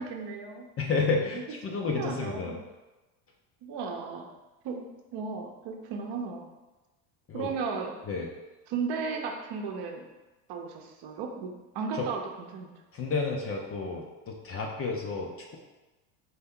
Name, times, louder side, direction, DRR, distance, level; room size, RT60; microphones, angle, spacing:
voice 1, 0.0-0.7 1.7-2.6 3.6-4.3 4.6-6.4 7.3-8.0 8.7-10.0 10.5-12.7, right 5 dB, 55° right, 2 dB, 0.8 m, -35 dB
voice 2, 0.8-2.6 7.3-7.5 8.1-8.3 12.0-12.1 12.9-15.6, left 4 dB, 30° left, 1 dB, 0.5 m, -31 dB
4.3 x 3.3 x 3.6 m, 1.1 s
supercardioid pair, 120°, 49 cm